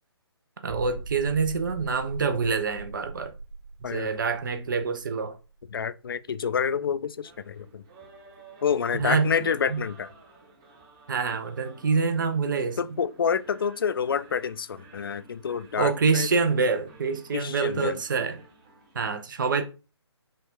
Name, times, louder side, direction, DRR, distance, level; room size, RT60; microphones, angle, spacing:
voice 1, 0.6-3.3 3.8-5.4 9.0-9.3 9.7-9.8 11.1-12.8 15.8-18.4 18.9-19.6, right 4 dB, 45° right, 0.7 m, -26 dB
sound 1, 0.7-6.1 6.4-6.5 7.0-7.1, right 4 dB, 65° right, 2.6 m, -41 dB
voice 2, 5.7-7.8 8.6-10.1 12.8-16.3 17.3-18.0, left 7 dB, 50° left, 0.4 m, -28 dB
sound 2, 7.2-19.0, right 3 dB, 20° right, 1.1 m, -53 dB
5.4 x 2.4 x 3.5 m
figure-of-eight pair, 150°, 15 cm